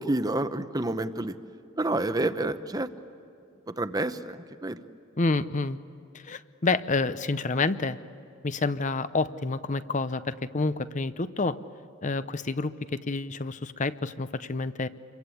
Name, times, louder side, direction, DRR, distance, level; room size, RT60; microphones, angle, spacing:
voice 1, 0.0-1.4 1.8-2.9 3.7-4.8, right 2 dB, 20° right, 10 dB, 0.9 m, -29 dB
voice 2, 5.2-5.8 6.2-8.0 8.4-11.6 12.0-14.9, left 3 dB, 35° left, 13 dB, 0.7 m, -28 dB
28.5 x 23.5 x 8.5 m, 2.7 s
head